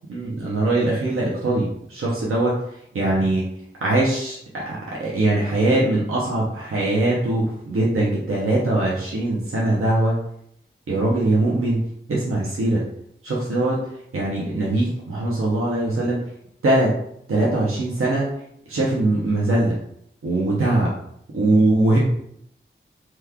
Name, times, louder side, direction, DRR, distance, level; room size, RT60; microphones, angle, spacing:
voice 1, 0.1-2.6 2.9-3.4 3.8-10.2 10.9-11.8 12.1-12.8 13.2-13.8 14.1-16.2 16.6-16.9 17.3-18.3 18.7-19.8 20.2-20.9 21.3-22.0, right 2 dB, 85° right, -5 dB, 0.8 m, -21 dB
3.0 x 2.4 x 3.5 m, 0.72 s
wide cardioid pair, 90°, 21 cm